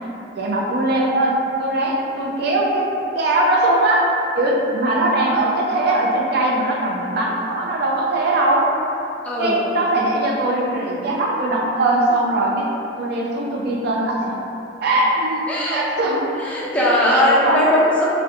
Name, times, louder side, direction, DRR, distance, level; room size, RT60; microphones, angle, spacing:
voice 1, 0.3-2.9 3.1-4.1 4.4-8.7 9.4-12.7 13.0-14.4 14.8-16.3 17.1-17.6, right 1 dB, 60° right, -2 dB, 0.4 m, -20 dB
voice 2, 9.2-9.7 15.5-15.8 16.4-18.0, left 1 dB, 5° left, -7 dB, 0.4 m, -19 dB
2.5 x 2.1 x 2.5 m, 2.8 s
head